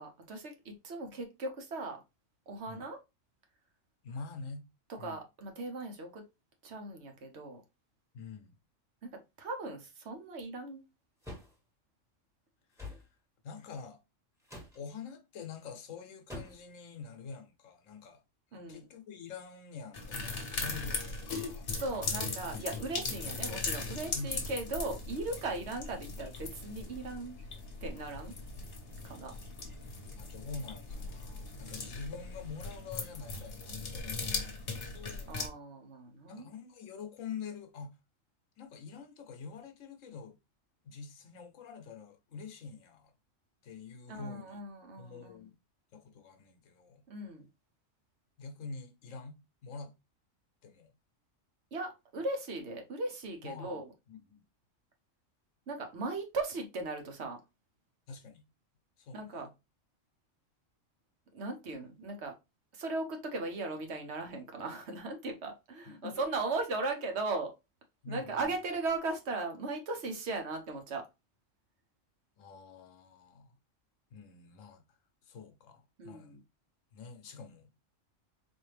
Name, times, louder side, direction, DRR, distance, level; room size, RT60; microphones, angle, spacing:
voice 1, 0.0-2.0 2.5-3.0 4.9-6.2 6.6-7.6 9.0-9.1 9.4-10.8 18.5-18.9 21.7-27.4 27.8-28.3 29.0-29.3 35.3-36.5 44.1-45.5 47.1-47.5 51.7-53.9 55.7-57.4 59.1-59.5 61.3-62.3 62.7-67.5 68.1-71.0 76.0-76.4, right 3 dB, 60° right, 1.1 m, -38 dB
voice 2, 4.0-4.6 5.0-5.2 8.1-8.6 12.7-13.0 13.4-14.0 14.7-18.2 18.5-21.7 24.1-24.5 30.1-35.4 36.3-37.9 38.6-40.4 40.8-43.1 43.6-44.6 45.0-45.5 45.9-47.0 48.4-49.9 50.6-50.9 53.4-53.8 54.1-54.5 58.1-58.4 59.0-59.5 61.8-61.9 65.9-66.3 68.0-68.6 72.4-73.5 74.1-75.0 75.2-76.4 76.9-77.7, left 5 dB, 80° left, 1.1 m, -46 dB
sound 1, 11.2-11.5 12.8-13.1 14.4-14.8 16.3-16.7, left 2 dB, ahead, 1.4 m, -44 dB
sound 2, 19.9-35.5, left 3 dB, 50° left, 1.1 m, -39 dB
4.2 x 2.7 x 3.2 m
omnidirectional pair, 1.3 m